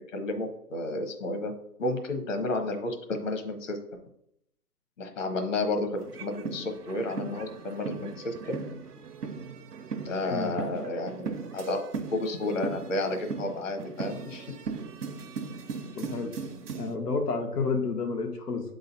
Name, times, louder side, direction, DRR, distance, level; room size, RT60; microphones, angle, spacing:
voice 1, 0.1-1.5 1.8-3.8 5.0-8.6 10.0-11.8 12.1-14.5, left 2 dB, 55° left, 5 dB, 1.4 m, -31 dB
sound 1, 5.9-17.0, right 5 dB, 85° right, 1.0 m, -38 dB
voice 2, 16.0-16.3 16.8-18.6, left 4 dB, 85° left, 3 dB, 1.6 m, -30 dB
7.6 x 3.9 x 4.1 m, 0.75 s
hypercardioid pair, 155°, 46 cm